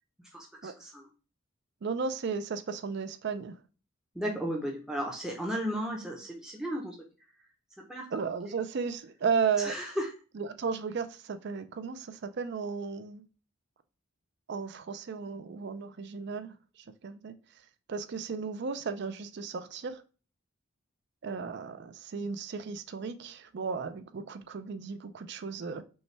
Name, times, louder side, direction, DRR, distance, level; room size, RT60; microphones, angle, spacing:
voice 1, 0.3-1.1 4.1-7.0 7.8-8.2 9.6-10.1, equal, 5° right, 0.6 m, -35 dB
voice 2, 1.8-3.6 8.1-9.7 10.4-13.2 14.5-16.5 17.0-17.4 17.9-20.0 21.2-25.8, right 5 dB, 55° right, 0.4 m, -34 dB
5.3 x 2.2 x 3.2 m
head